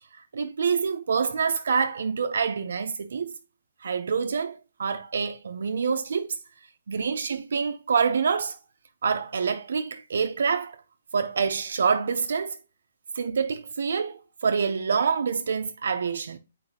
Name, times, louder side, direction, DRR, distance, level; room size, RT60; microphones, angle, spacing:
voice 1, 0.1-3.4 3.8-6.4 6.9-8.6 9.0-10.8 11.1-12.6 13.1-16.4, right 5 dB, 65° right, 0.6 m, -26 dB
8.0 x 4.6 x 2.8 m
hypercardioid pair, 180°, 0 cm